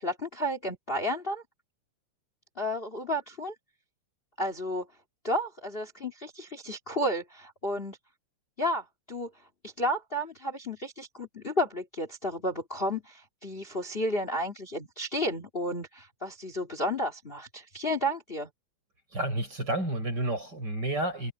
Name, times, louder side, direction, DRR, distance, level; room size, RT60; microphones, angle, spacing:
voice 1, 0.0-1.4 2.6-3.5 4.4-4.9 5.2-8.0 8.6-9.3 9.6-18.5, equal, 35° left, 0.9 m, -32 dB
voice 2, 19.1-21.3, right 1 dB, 20° right, 8.1 m, -30 dB
omnidirectional pair, 5.3 m